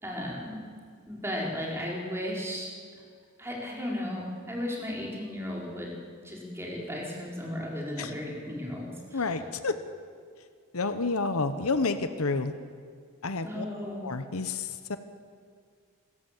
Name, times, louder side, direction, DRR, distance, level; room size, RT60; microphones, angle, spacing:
voice 1, 0.0-0.6 1.1-2.7 3.4-9.3 13.4-14.0, left 1 dB, 10° right, -3 dB, 4.4 m, -35 dB
voice 2, 9.1-9.8 10.7-12.5 13.2-13.6 14.0-15.0, left 3 dB, 75° left, 10 dB, 1.1 m, -29 dB
25.0 x 14.5 x 7.4 m, 2.1 s
head